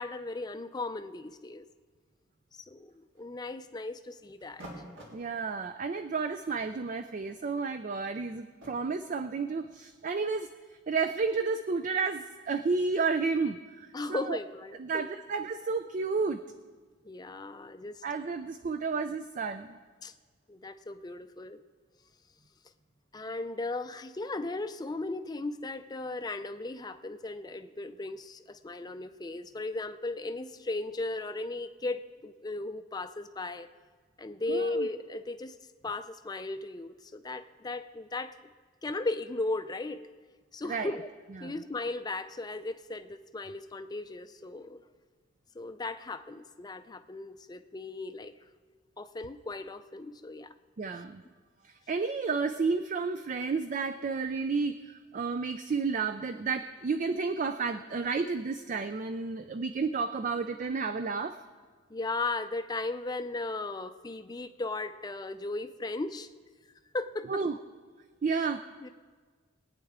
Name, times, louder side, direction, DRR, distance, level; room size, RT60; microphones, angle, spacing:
voice 1, 0.0-1.7 2.6-4.6 13.9-15.0 17.0-18.0 20.0-20.1 20.5-21.6 23.1-33.7 34.2-35.6 35.8-38.4 38.8-40.0 40.5-41.1 41.4-44.8 45.5-48.3 49.0-50.5 61.9-66.3 66.9-67.4 68.3-68.5 68.8-68.9, left 2 dB, 20° left, 10 dB, 0.5 m, -36 dB
sound 1, 2.9-3.7 4.4-5.2 6.0-6.1 6.4-8.7, right 1 dB, 80° right, 3.2 m, -50 dB
voice 2, 5.1-10.5 10.9-14.4 14.8-16.4 18.0-19.8 34.5-34.9 40.7-40.9 41.4-41.5 50.8-51.2 51.6-61.4 67.3-67.5 68.2-68.6, right 4 dB, 40° right, 9 dB, 0.4 m, -31 dB
22.0 x 9.1 x 3.6 m, 1.5 s
head